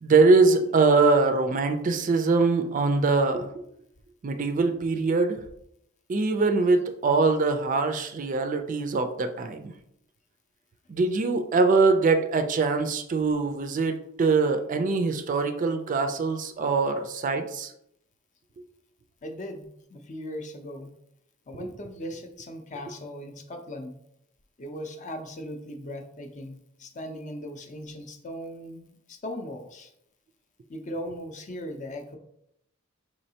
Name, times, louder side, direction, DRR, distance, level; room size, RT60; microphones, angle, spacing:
voice 1, 0.0-3.5 4.2-5.4 6.1-9.7 10.9-17.7, right 3 dB, 40° right, 7 dB, 0.4 m, -23 dB
voice 2, 19.2-20.9 21.5-24.0 24.6-29.9 30.7-32.2, equal, 40° left, 6 dB, 0.5 m, -38 dB
4.8 x 3.1 x 2.8 m, 0.75 s
head